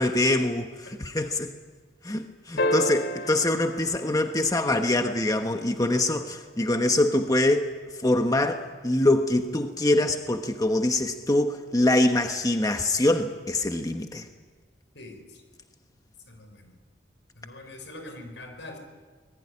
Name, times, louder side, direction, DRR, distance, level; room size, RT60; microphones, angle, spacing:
voice 1, 0.0-1.5 2.0-7.7 8.0-14.3, left 1 dB, 20° left, 5 dB, 1.2 m, -24 dB
sound 1, 2.6-5.1 7.3-7.4, equal, 65° left, 3.1 m, -30 dB
voice 2, 14.9-15.4 16.3-16.7 17.4-18.8, left 2 dB, 80° left, 6 dB, 5.6 m, -43 dB
26.0 x 20.5 x 9.8 m, 1.5 s
head